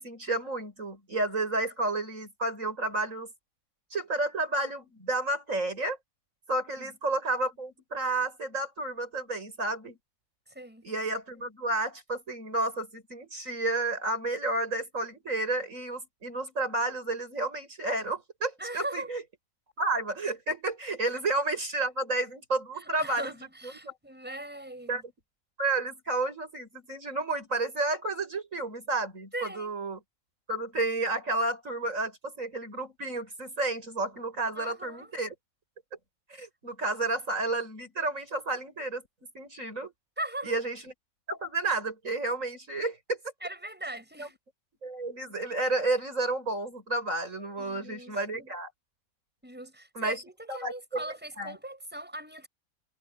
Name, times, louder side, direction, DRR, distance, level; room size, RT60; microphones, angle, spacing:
voice 1, 0.0-3.3 3.9-6.0 6.5-10.0 10.8-19.2 19.8-23.3 23.8-23.9 24.9-25.0 25.6-30.0 30.5-35.3 36.3-39.0 39.3-39.9 40.4-40.8 41.3-43.2 44.2-44.3 44.8-48.7 50.0-50.2 50.5-51.0 51.4-51.6, right 2 dB, 65° right, 7.4 m, -31 dB
voice 2, 10.5-10.9 18.6-19.1 22.8-25.0 29.3-29.7 34.5-35.1 40.2-40.6 43.4-44.3 47.6-48.5 49.4-52.5, right 1 dB, 5° right, 6.1 m, -40 dB
omnidirectional pair, 1.5 m